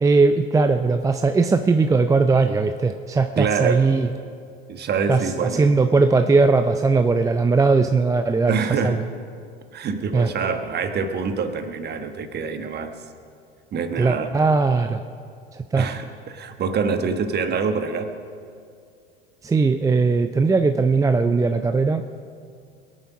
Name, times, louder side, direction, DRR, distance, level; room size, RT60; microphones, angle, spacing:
voice 1, 0.0-4.1 5.1-9.0 10.1-10.3 14.0-15.0 15.5-15.9 19.4-22.1, right 4 dB, 10° right, 8 dB, 0.5 m, -19 dB
voice 2, 3.3-3.8 4.7-5.7 8.5-9.1 9.7-12.9 13.7-14.3 15.7-18.1, right 5 dB, 35° right, 8 dB, 1.3 m, -25 dB
21.5 x 9.0 x 6.0 m, 2.3 s
hypercardioid pair, 75°, 30 cm